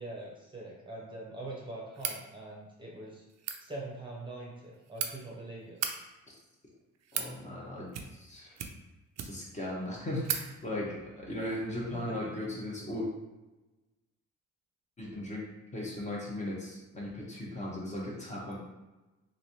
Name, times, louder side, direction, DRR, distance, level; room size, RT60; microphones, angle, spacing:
voice 1, 0.0-3.2 3.6-5.8 11.9-12.1, right 2 dB, 15° right, -4 dB, 0.7 m, -43 dB
sound 1, 1.9-2.2 3.3-3.6 4.6-5.1 5.7-5.9 6.7-7.3 7.9-8.3 8.6-9.5 9.9-10.0 10.2-10.4, right 8 dB, 60° right, 0.4 m, -35 dB
voice 2, 7.1-8.5 9.2-13.1 15.0-15.4 15.7-18.6, left 1 dB, 25° left, -4 dB, 0.9 m, -37 dB
3.1 x 2.7 x 2.7 m, 1.1 s
cardioid pair, 90°, 30 cm